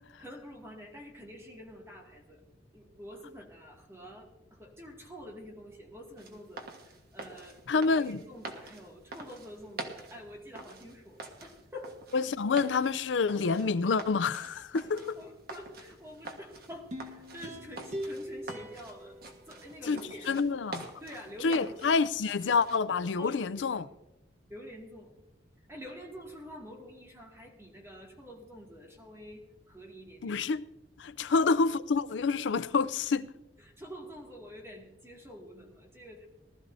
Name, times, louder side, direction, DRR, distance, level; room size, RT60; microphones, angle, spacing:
voice 1, 0.2-2.4 2.7-12.0 14.9-19.2 19.5-20.4 21.0-22.0 23.2-23.9 24.5-25.2 25.7-30.4 31.2-31.3 33.6-36.3, equal, 15° right, 2.2 m, -47 dB
sound 1, 6.2-22.8, right 2 dB, 60° right, 1.5 m, -46 dB
voice 2, 7.7-8.2 12.1-15.0 19.9-20.0 20.3-20.9 21.4-23.9 30.2-30.6 31.0-33.3, left 4 dB, 85° left, 0.5 m, -28 dB
sound 2, 16.9-20.2 20.6-20.7, equal, 40° right, 1.2 m, -42 dB
19.5 x 13.0 x 2.7 m
head